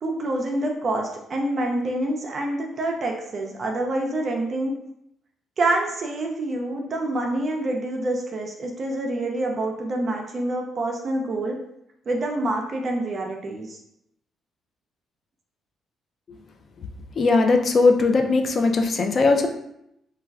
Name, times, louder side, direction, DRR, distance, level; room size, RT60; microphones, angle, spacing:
voice 1, 0.0-4.7 5.6-11.6 12.1-13.8, right 2 dB, 45° right, 1 dB, 0.4 m, -27 dB
voice 2, 17.2-19.5, left 3 dB, 45° left, 5 dB, 0.3 m, -19 dB
3.2 x 2.2 x 2.3 m, 0.78 s
cardioid pair, 90°, 0 cm